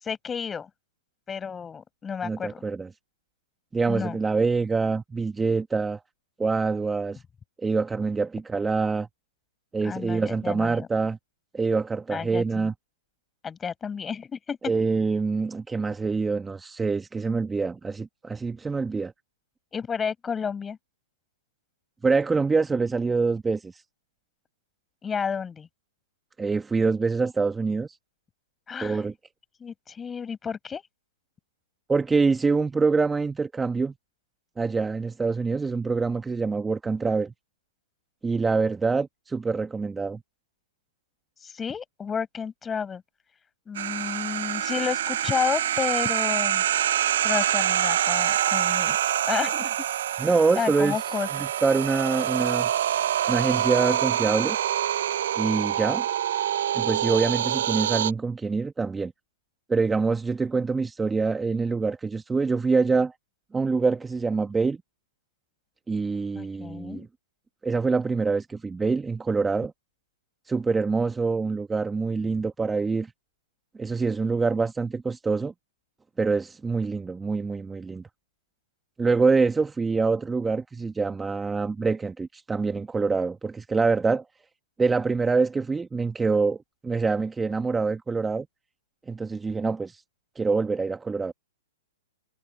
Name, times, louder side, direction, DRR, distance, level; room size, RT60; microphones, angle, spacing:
voice 1, 0.0-0.7 1.3-2.6 3.9-4.2 9.8-10.9 12.1-12.7 13.4-14.6 19.7-20.8 25.0-25.7 28.7-29.0 29.6-30.8 41.4-43.0 43.7-46.6 47.0-49.0 49.3-49.8 50.2-50.3 50.5-51.3 66.3-67.1, left 6 dB, 15° left, 6.1 m, -31 dB
voice 2, 2.2-2.9 3.7-6.0 6.4-7.2 7.6-9.1 9.7-11.2 11.5-12.7 14.6-19.1 22.0-23.8 26.4-28.0 28.8-29.1 31.9-33.9 34.6-37.3 38.2-40.2 50.2-51.0 51.3-52.7 53.3-54.6 55.4-56.1 56.7-59.1 59.7-63.1 63.5-64.8 65.9-67.1 67.6-69.7 70.5-73.1 73.8-75.5 76.2-78.1 79.0-84.2 84.8-86.6 86.8-88.5 89.1-90.0 90.3-91.3, right 4 dB, 10° right, 1.5 m, -25 dB
sound 1, 43.7-58.1, right 11 dB, 65° right, 0.7 m, -26 dB
hypercardioid pair, 120°, 0 cm